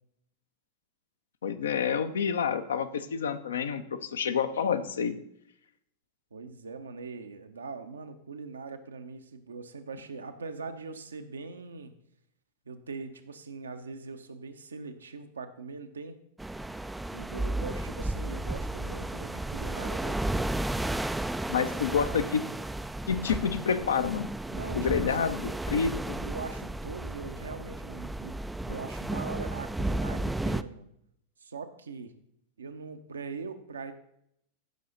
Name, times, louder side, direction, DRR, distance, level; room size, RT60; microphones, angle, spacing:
voice 1, 1.4-5.2 21.5-22.5 23.1-24.3 24.7-26.2, left 6 dB, 65° left, 10 dB, 0.7 m, -28 dB
voice 2, 6.3-11.9 12.7-16.2 17.1-20.2 24.5-25.3 26.2-28.4 28.7-30.9 31.4-32.1 32.6-33.9, right 4 dB, 70° right, 8 dB, 0.9 m, -41 dB
sound 1, 16.4-30.6, right 1 dB, 5° right, 0.4 m, -33 dB
14.5 x 5.7 x 3.9 m, 0.74 s
figure-of-eight pair, 90°, 0 cm